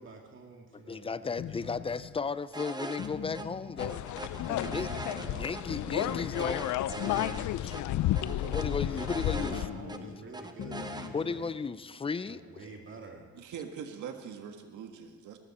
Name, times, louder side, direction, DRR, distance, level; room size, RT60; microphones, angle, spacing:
voice 1, 0.0-2.2 4.4-6.2 8.4-11.4 12.2-13.2, right 3 dB, 40° right, 1 dB, 2.2 m, -48 dB
voice 2, 0.7-4.0 4.3-4.9 5.3-7.2 7.6-7.9 8.5-9.7 11.1-12.7, left 5 dB, 20° left, 15 dB, 0.5 m, -35 dB
sound 1, 1.4-2.2 3.0-3.9 4.4-5.4 5.7-6.5 7.0-7.8 8.2-9.1 9.4-10.2 10.6-11.6, left 9 dB, 55° left, 0.9 m, -41 dB
sound 2, 2.5-3.1 3.3-3.5 3.8-5.6 6.0-7.5 7.7-7.8 8.2-10.0 10.3-11.1, right 2 dB, 15° right, 1.1 m, -41 dB
sound 3, 3.8-9.7, left 13 dB, 75° left, 0.6 m, -32 dB
voice 3, 13.3-15.4, right 7 dB, 80° right, 5 dB, 1.6 m, -42 dB
18.5 x 14.0 x 4.3 m, 1.4 s
cardioid pair, 90°, 30 cm